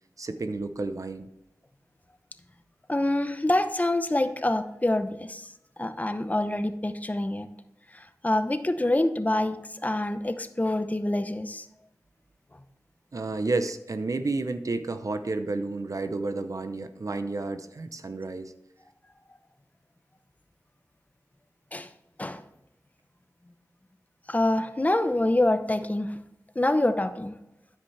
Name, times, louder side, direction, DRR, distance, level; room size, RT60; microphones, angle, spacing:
voice 1, 0.2-1.3 13.1-18.5, right 3 dB, 60° right, 9 dB, 0.7 m, -31 dB
voice 2, 2.9-5.5 5.8-7.5 7.9-9.6 9.8-11.7 21.7-21.9 22.2-22.4 24.3-26.2 26.6-27.3, left 1 dB, 25° left, 9 dB, 0.8 m, -26 dB
9.8 x 8.1 x 3.3 m, 0.86 s
wide cardioid pair, 55°, 6 cm